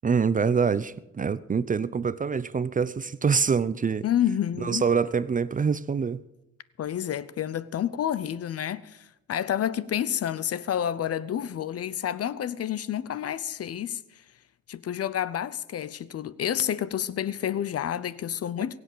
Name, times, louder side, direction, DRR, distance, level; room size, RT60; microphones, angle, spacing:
voice 1, 0.0-4.0 4.6-6.2, right 6 dB, 25° right, 0.6 m, -25 dB
voice 2, 4.0-4.8 6.8-14.0 14.7-18.8, left 10 dB, 55° left, 0.8 m, -29 dB
22.5 x 8.0 x 6.8 m
cardioid pair, 90°, 30 cm